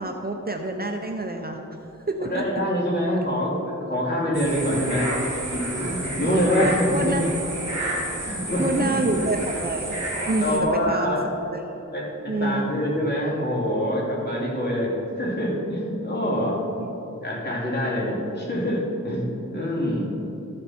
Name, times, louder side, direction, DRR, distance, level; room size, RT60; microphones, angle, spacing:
voice 1, 0.0-1.6 2.1-2.4 6.3-7.2 8.6-10.0 10.3-11.2 11.5-11.6 12.3-12.8 16.8-16.9, right 2 dB, 30° right, 3 dB, 0.7 m, -27 dB
voice 2, 2.2-5.1 5.5-7.3 8.2-9.0 10.4-11.2 11.9-16.6 17.2-20.0, equal, 35° left, -5 dB, 2.7 m, -25 dB
sound 1, 4.3-10.6, right 1 dB, 65° right, 2.4 m, -30 dB
13.5 x 7.8 x 4.4 m, 2.9 s
wide cardioid pair, 85°, 30 cm